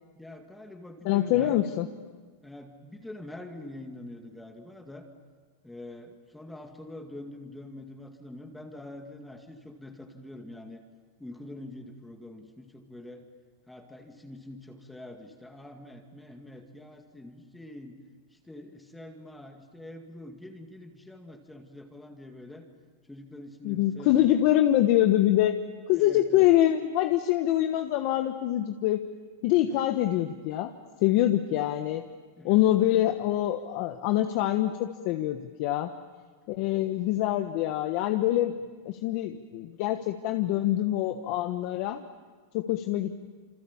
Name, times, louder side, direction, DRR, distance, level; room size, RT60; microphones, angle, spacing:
voice 1, 0.2-1.8 2.4-5.1 5.6-10.8 11.2-13.2 13.7-18.0 18.3-22.7 23.0-24.3 25.9-26.5 29.6-29.8 32.4-33.1, left 1 dB, 5° left, 4 dB, 2.1 m, -45 dB
voice 2, 1.0-1.9 23.6-25.6 25.9-29.1 29.4-30.7 31.0-32.0 32.4-35.9 36.5-38.6 38.8-42.0 42.5-43.1, left 13 dB, 50° left, 6 dB, 1.2 m, -25 dB
27.5 x 26.5 x 7.3 m, 1.4 s
supercardioid pair, 145°, 0 cm